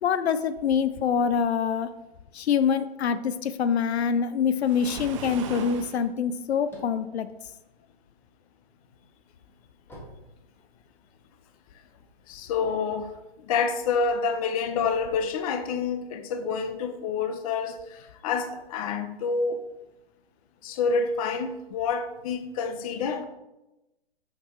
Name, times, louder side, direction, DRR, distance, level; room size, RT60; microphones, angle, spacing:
voice 1, 0.0-1.9 2.3-7.3, left 7 dB, 80° left, 0.6 m, -25 dB
Waves surf, 4.6-6.1, right 7 dB, 30° right, 0.6 m, -38 dB
sound 1, 6.7-8.4 8.9-11.1, equal, 5° left, 1.5 m, -49 dB
voice 2, 12.3-19.6 20.6-23.2, left 5 dB, 35° left, 0.7 m, -28 dB
6.0 x 6.0 x 4.3 m
hypercardioid pair, 150°, 32 cm